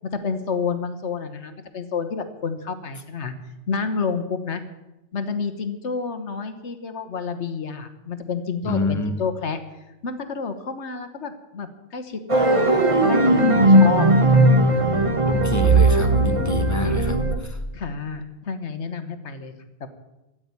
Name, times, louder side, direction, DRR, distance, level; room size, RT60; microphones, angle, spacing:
voice 1, 0.0-3.3 3.7-4.6 5.1-9.6 10.0-12.8 13.1-14.1 17.7-19.5 19.8-19.9, left 5 dB, 85° left, 9 dB, 1.5 m, -29 dB
voice 2, 8.6-9.2 13.5-13.6 15.2-17.6, left 2 dB, 15° left, 5 dB, 1.4 m, -28 dB
sound 1, 12.3-17.4, right 1 dB, 30° right, 1.4 m, -17 dB
13.5 x 8.9 x 9.7 m, 0.97 s
omnidirectional pair, 1.1 m